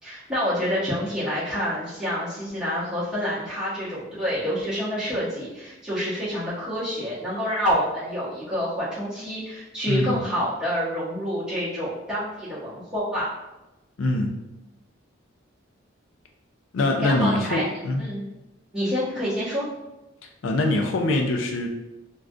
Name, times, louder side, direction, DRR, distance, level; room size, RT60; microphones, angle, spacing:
voice 1, 0.0-13.3 17.0-17.7 18.0-18.2 18.7-19.7, equal, 5° right, -11 dB, 1.2 m, -27 dB
voice 2, 9.9-10.2 14.0-14.4 16.7-18.0 20.4-21.7, left 2 dB, 85° left, 3 dB, 0.4 m, -23 dB
3.4 x 2.3 x 2.5 m, 0.99 s
head